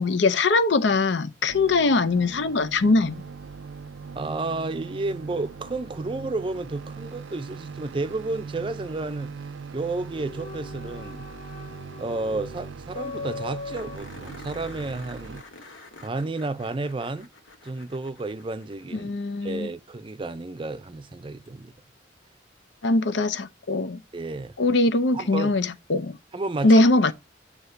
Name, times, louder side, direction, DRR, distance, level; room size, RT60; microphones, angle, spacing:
voice 1, 0.0-3.2 18.9-19.7 22.8-24.0 24.6-26.2 26.6-27.1, left 2 dB, 70° left, 0.6 m, -21 dB
sound 1, 1.5-15.4, right 5 dB, 85° right, 0.5 m, -40 dB
voice 2, 4.2-9.3 9.7-11.2 12.0-15.4 16.0-17.3 17.6-19.1 19.4-21.7 24.1-24.5 25.1-25.5 26.3-26.8, right 2 dB, 25° right, 0.5 m, -31 dB
sound 2, 10.1-14.0, left 4 dB, 30° left, 1.0 m, -39 dB
sound 3, 12.3-12.4 12.6-12.7 13.0-13.1 13.7-19.1 21.5-21.6 24.4-24.5, left 3 dB, 90° left, 1.3 m, -47 dB
8.0 x 2.9 x 5.6 m
head